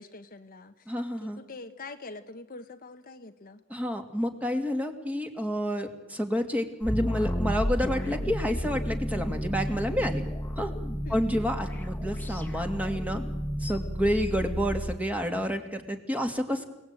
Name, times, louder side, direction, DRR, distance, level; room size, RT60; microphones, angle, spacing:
voice 1, 0.0-3.6 11.0-11.4 14.3-14.4, left 3 dB, 40° left, 7 dB, 1.2 m, -45 dB
voice 2, 0.9-1.4 3.7-10.2 10.6-10.7 11.1-13.2 13.6-16.6, equal, 5° right, 5 dB, 2.6 m, -29 dB
sound 1, 6.8-15.0, equal, 10° left, 1.9 m, -32 dB
29.5 x 18.5 x 9.1 m, 0.96 s
head